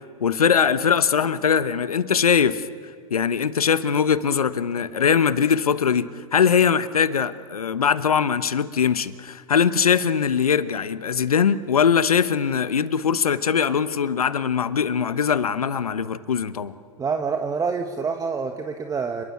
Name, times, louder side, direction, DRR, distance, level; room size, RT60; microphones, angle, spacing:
voice 1, 0.2-2.6 3.1-16.7, left 7 dB, 85° left, 14 dB, 1.1 m, -21 dB
voice 2, 17.0-19.2, right 5 dB, 20° right, 5 dB, 1.5 m, -26 dB
29.5 x 22.0 x 8.6 m, 2.1 s
hypercardioid pair, 100°, 18 cm